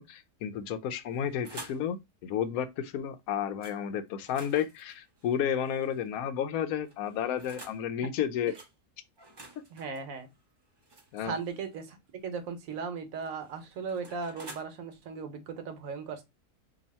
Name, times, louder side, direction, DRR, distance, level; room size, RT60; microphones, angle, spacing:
voice 1, 0.0-8.5 11.1-11.3, left 9 dB, 80° left, 1.0 m, -32 dB
sound 1, 0.9-1.9 3.6-3.8 4.2-6.1 6.8-7.8 8.5-8.7 9.2-11.9 13.0-14.6, right 2 dB, 30° right, 0.5 m, -50 dB
voice 2, 9.7-10.3 11.2-12.0 12.2-16.2, right 5 dB, 70° right, 1.2 m, -37 dB
2.8 x 2.7 x 4.0 m
omnidirectional pair, 1.5 m